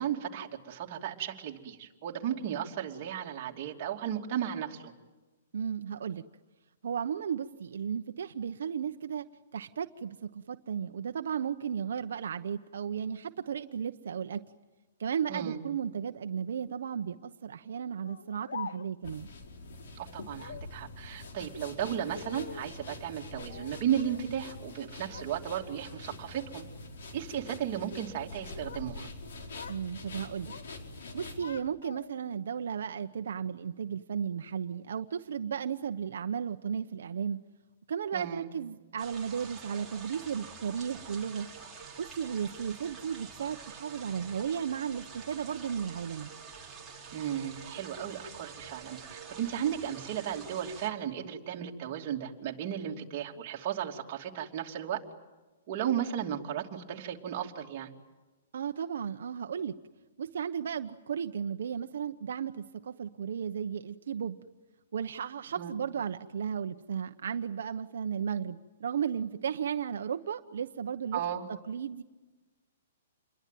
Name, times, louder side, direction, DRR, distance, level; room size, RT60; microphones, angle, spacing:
voice 1, 0.0-4.9 15.3-15.6 19.9-26.6 27.1-29.1 38.1-38.5 47.1-55.0 55.7-57.9 65.5-65.7 71.1-71.5, right 10 dB, 35° right, 1 dB, 2.8 m, -35 dB
voice 2, 5.5-6.2 6.8-9.3 9.5-14.4 15.0-19.3 29.7-30.5 31.1-37.4 37.9-41.5 42.0-46.3 58.5-59.7 60.2-64.4 64.9-71.2 71.7-72.0, right 7 dB, 75° right, 7 dB, 1.0 m, -34 dB
Speech, 18.0-19.1 20.3-20.7 21.7-22.8 23.5-24.3 24.6-25.3 25.7-26.1 26.8-27.1 28.2-28.9 29.2-29.9 30.1-30.7 31.1-32.3, left 7 dB, 90° left, 0.9 m, -46 dB
sound 1, 19.0-31.4, left 2 dB, 65° left, 4.8 m, -45 dB
sound 2, 39.0-50.9, right 5 dB, 5° right, 3.2 m, -47 dB
28.0 x 22.5 x 9.3 m, 1.2 s
hypercardioid pair, 170°, 0 cm